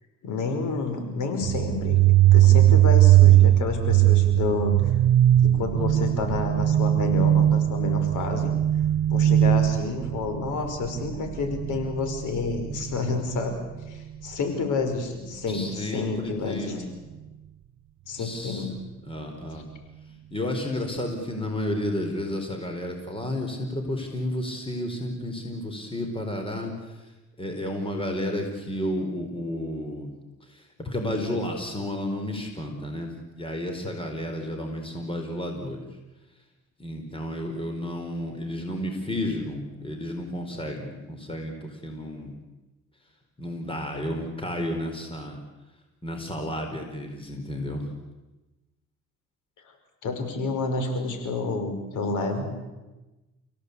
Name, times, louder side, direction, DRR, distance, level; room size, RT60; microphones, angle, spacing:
voice 1, 0.2-4.7 5.4-8.5 9.1-13.6 13.9-16.9 18.1-18.7 50.0-52.5, left 3 dB, 80° left, 6 dB, 5.5 m, -29 dB
sound 1, 1.4-12.9, right 13 dB, 70° right, 0.7 m, -19 dB
voice 2, 15.5-16.9 18.2-18.7 19.1-19.7 20.3-26.7 27.4-30.1 30.5-33.1 33.3-35.9 36.8-42.4 43.4-45.4 46.0-47.9, left 1 dB, 20° left, 4 dB, 4.9 m, -32 dB
30.0 x 17.0 x 8.5 m, 1.1 s
cardioid pair, 90°, 30 cm